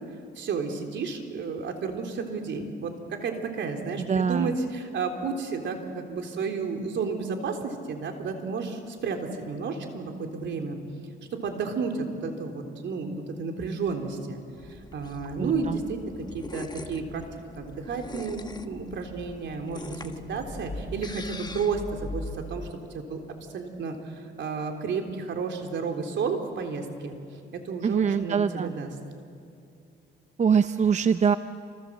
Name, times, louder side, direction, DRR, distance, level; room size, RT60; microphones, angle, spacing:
voice 1, 0.4-10.8 11.4-14.4 14.7-17.2 17.6-22.7 22.9-23.2 23.5-27.2 27.5-28.9, right 4 dB, 65° right, 3 dB, 3.6 m, -32 dB
voice 2, 4.0-4.5 15.4-15.8 27.8-28.7 30.4-31.4, right 6 dB, 35° right, 11 dB, 0.7 m, -24 dB
sound 1, 14.6-22.7, left 2 dB, 20° left, 1.3 m, -41 dB
28.5 x 26.0 x 7.5 m, 2.5 s
cardioid pair, 90°, 20 cm